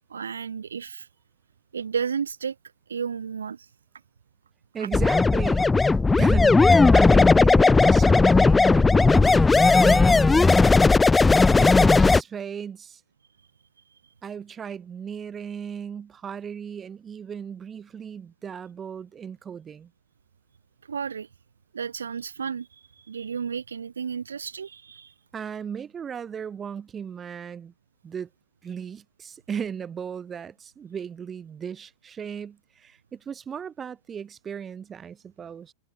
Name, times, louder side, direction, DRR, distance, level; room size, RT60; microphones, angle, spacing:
voice 1, 0.1-1.1 1.7-2.6 2.9-3.7 20.9-21.3 21.7-25.1, right 6 dB, 70° right, 2.3 m, -32 dB
voice 2, 4.7-10.6 11.6-13.0 14.2-19.9 25.3-27.7 28.0-28.3 28.6-35.7, right 7 dB, 20° right, 4.3 m, -36 dB
sound 1, 4.9-12.2, left 3 dB, 10° left, 1.0 m, -16 dB
figure-of-eight pair, 90°, 0 cm